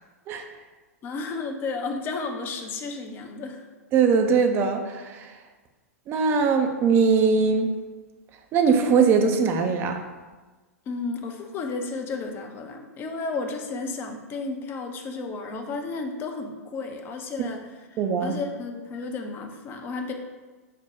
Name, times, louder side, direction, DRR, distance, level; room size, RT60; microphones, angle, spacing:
voice 1, 1.0-3.7 10.9-17.7 18.2-20.1, left 3 dB, 25° left, 4 dB, 0.5 m, -32 dB
voice 2, 3.9-5.3 6.1-7.7 8.5-10.0 17.4-17.5 18.0-18.4, right 5 dB, 25° right, 5 dB, 0.5 m, -21 dB
5.0 x 2.2 x 4.3 m, 1.3 s
figure-of-eight pair, 100°, 8 cm